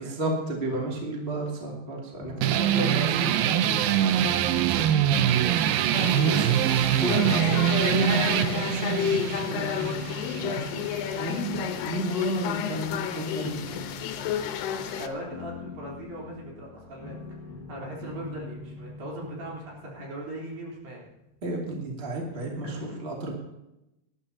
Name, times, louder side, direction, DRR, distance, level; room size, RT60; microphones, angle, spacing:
voice 1, 0.0-3.3 6.2-6.5 7.0-10.6 11.1-13.8 21.4-23.3, right 1 dB, 20° right, -2 dB, 2.0 m, -33 dB
sound 1, 2.2-21.2, left 3 dB, 65° left, 3.8 m, -44 dB
sound 2, 2.4-11.5, right 10 dB, 80° right, 2.2 m, -24 dB
voice 2, 2.6-3.0 3.4-4.5 4.8-5.8 6.2-6.5 14.7-17.2 17.7-21.0 22.6-23.0, right 1 dB, 60° right, -3 dB, 5.4 m, -39 dB
sound 3, 5.9-15.1, left 9 dB, 90° left, 3.0 m, -31 dB
19.5 x 12.0 x 2.9 m, 0.90 s
omnidirectional pair, 4.6 m